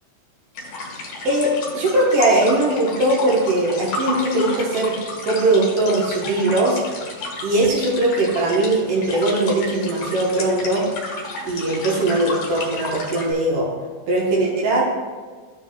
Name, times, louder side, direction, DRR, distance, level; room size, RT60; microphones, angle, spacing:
sound 1, 0.5-13.3, left 3 dB, 55° left, 2.0 m, -32 dB
voice 1, 1.2-5.0 5.2-6.8 7.4-10.9 11.4-13.7 14.1-14.8, right 2 dB, 80° right, -3 dB, 1.3 m, -20 dB
14.5 x 4.9 x 2.2 m, 1.5 s
omnidirectional pair, 4.3 m